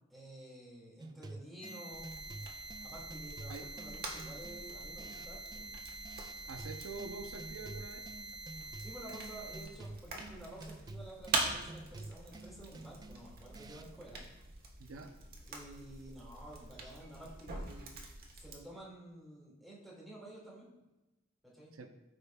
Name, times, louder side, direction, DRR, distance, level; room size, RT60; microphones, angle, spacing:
voice 1, 0.1-2.1 2.8-5.7 8.8-14.2 15.5-17.9 18.4-20.7 21.4-21.7, right 1 dB, ahead, -6 dB, 2.1 m, -51 dB
sound 1, 1.0-14.0, right 2 dB, 20° right, 0.3 m, -50 dB
sound 2, 1.6-9.6, right 2 dB, 25° left, 2.4 m, -47 dB
sound 3, 1.9-18.6, right 3 dB, 45° right, 1.3 m, -44 dB
voice 2, 6.5-8.1 14.8-15.2 21.7-21.9, right 4 dB, 75° right, 6 dB, 0.6 m, -46 dB
13.5 x 5.2 x 2.3 m, 1.0 s
head